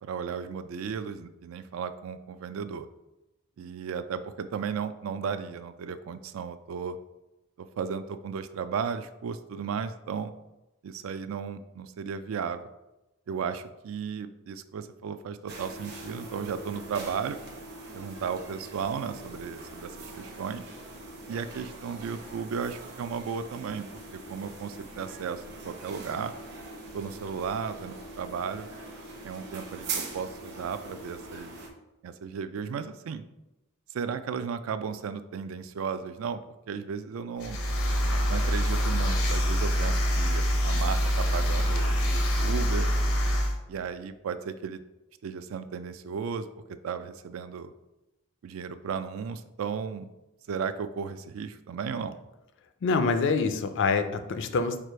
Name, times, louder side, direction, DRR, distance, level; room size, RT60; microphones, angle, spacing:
voice 1, 0.0-2.9 3.6-7.0 7.6-10.3 10.8-12.7 13.3-17.4 17.9-20.7 21.3-26.3 26.9-28.7 29.2-31.6 32.0-33.2 33.9-36.4 36.7-37.6 38.3-42.9 43.7-44.8 45.2-47.7 48.4-50.1 50.5-52.2, right 6 dB, 70° right, 11 dB, 0.3 m, -35 dB
sound 1, 15.5-31.7, right 3 dB, 55° right, 0.9 m, -42 dB
sound 2, 37.4-43.5, equal, 80° left, 0.8 m, -25 dB
voice 2, 52.8-54.8, left 4 dB, 60° left, 9 dB, 0.4 m, -25 dB
4.7 x 2.4 x 4.5 m, 0.98 s
head